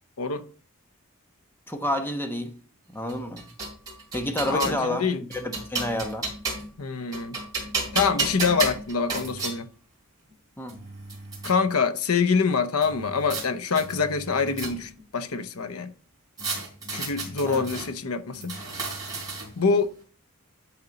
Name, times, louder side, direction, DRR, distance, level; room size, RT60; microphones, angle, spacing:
voice 1, 1.7-2.5 2.9-3.5 4.1-6.3 10.6-10.8 17.5-17.6, left 1 dB, 10° left, 1.0 m, -29 dB
sound 1, 3.1-4.8 5.3-6.8 7.1-9.6 10.3-10.4 10.7-11.5 12.8-13.4 13.7-15.0 16.4-17.9 18.3-19.7, right 3 dB, 15° right, 3.6 m, -32 dB
voice 2, 4.5-5.2 6.8-7.4 7.9-9.7 11.4-15.9 16.9-18.6 19.6-19.9, left 5 dB, 80° left, 0.8 m, -25 dB
11.0 x 4.4 x 4.0 m
head